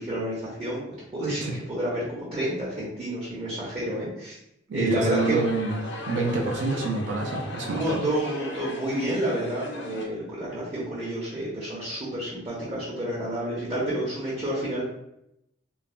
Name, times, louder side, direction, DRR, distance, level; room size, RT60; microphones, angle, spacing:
voice 1, 0.0-4.4 4.7-5.4 7.6-14.8, right 1 dB, 30° right, -9 dB, 0.7 m, -29 dB
voice 2, 4.7-8.1, right 3 dB, 65° right, 0 dB, 0.4 m, -27 dB
sound 1, 5.0-10.1, left 2 dB, 65° left, 0.5 m, -37 dB
3.2 x 2.1 x 2.4 m, 0.81 s
head